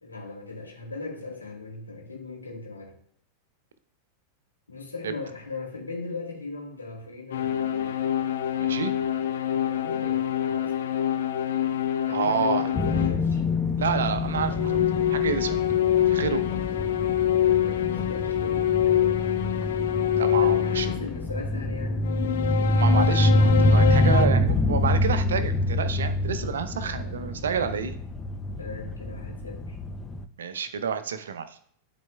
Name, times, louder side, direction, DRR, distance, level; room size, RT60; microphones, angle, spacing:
voice 1, 0.0-2.9 4.7-8.0 9.5-10.7 12.0-13.4 17.4-19.2 20.4-22.1 26.8-27.2 28.6-29.8, left 3 dB, 80° left, -1 dB, 2.3 m, -39 dB
sound 1, 7.3-13.2 14.2-21.2 22.0-24.3, left 11 dB, 60° left, 0.6 m, -26 dB
voice 2, 8.6-8.9 12.1-12.7 13.8-15.6 16.0-16.4 20.2-20.9 22.7-27.9 30.4-31.6, right 6 dB, 65° right, 11 dB, 0.6 m, -29 dB
sound 2, 12.7-30.2, left 1 dB, 15° left, 0.5 m, -26 dB
12.0 x 4.1 x 2.3 m, 0.65 s
figure-of-eight pair, 90°, 0 cm